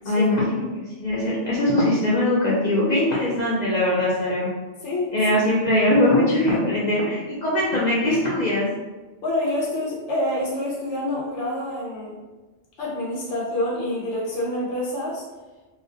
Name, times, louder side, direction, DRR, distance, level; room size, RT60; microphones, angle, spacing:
voice 1, 0.1-0.7 1.0-4.5 5.1-8.7, left 1 dB, 55° left, -7 dB, 0.5 m, -21 dB
voice 2, 4.8-5.1 9.2-12.2 12.8-15.2, left 1 dB, 80° left, -4 dB, 1.0 m, -27 dB
2.3 x 2.1 x 2.6 m, 1.2 s
omnidirectional pair, 1.2 m